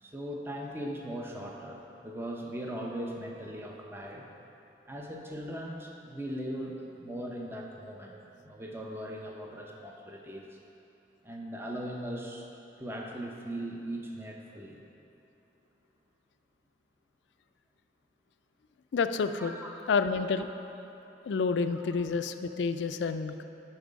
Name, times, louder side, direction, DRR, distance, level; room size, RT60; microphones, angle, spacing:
voice 1, 0.0-4.3 4.9-8.2 8.4-10.5 11.2-12.4 12.8-14.8 19.4-19.8 21.7-22.0, right 1 dB, 15° right, 0 dB, 0.6 m, -39 dB
voice 2, 18.9-19.5 19.9-20.5 21.3-23.4, left 5 dB, 75° left, 9 dB, 0.4 m, -29 dB
8.9 x 5.4 x 5.1 m, 2.9 s
head